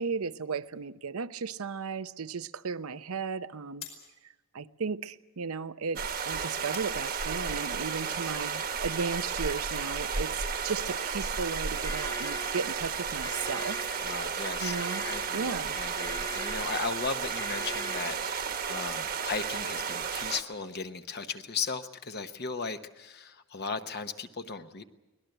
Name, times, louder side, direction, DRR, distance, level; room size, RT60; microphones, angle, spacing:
voice 1, 0.0-3.9 4.5-13.9 14.6-15.0 15.3-15.7, right 5 dB, 85° right, 14 dB, 0.7 m, -35 dB
sound 1, 0.6-9.2, left 8 dB, 75° left, 5.2 m, -54 dB
sound 2, 6.0-20.4, right 6 dB, 45° right, 1.2 m, -33 dB
sound 3, 11.8-18.6, left 3 dB, 20° left, 0.7 m, -43 dB
voice 2, 14.0-14.7 15.0-24.8, left 4 dB, 50° left, 8 dB, 1.0 m, -36 dB
24.0 x 18.5 x 7.9 m, 1.1 s
head